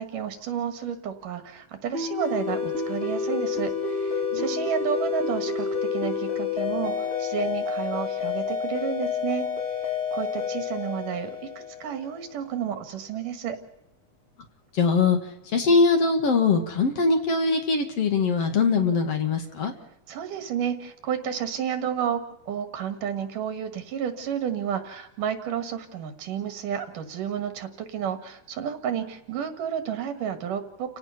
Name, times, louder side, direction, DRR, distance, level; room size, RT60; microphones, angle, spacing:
voice 1, 0.0-9.5 10.1-11.3 11.8-13.6 20.1-31.0, right 8 dB, 80° right, 8 dB, 3.5 m, -31 dB
sound 1, 1.9-12.3, left 5 dB, 20° left, 5.9 m, -29 dB
voice 2, 14.7-15.2 15.4-19.7, left 4 dB, 50° left, 5 dB, 2.8 m, -22 dB
30.0 x 17.0 x 5.8 m, 0.79 s
omnidirectional pair, 3.7 m